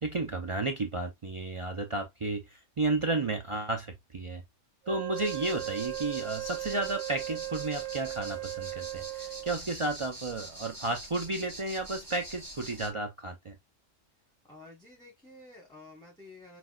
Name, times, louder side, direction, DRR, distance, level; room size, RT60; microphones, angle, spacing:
voice 1, 0.0-4.4 4.9-13.6, right 2 dB, 55° right, 0.3 m, -33 dB
Wind instrument woodwind instrument, 4.8-9.6, right 18 dB, 70° right, 1.4 m, -37 dB
sound 1, 5.1-12.9, right 1 dB, 20° right, 1.1 m, -45 dB
voice 2, 14.5-16.6, left 2 dB, 5° left, 1.1 m, -51 dB
5.9 x 2.3 x 2.3 m
omnidirectional pair, 1.4 m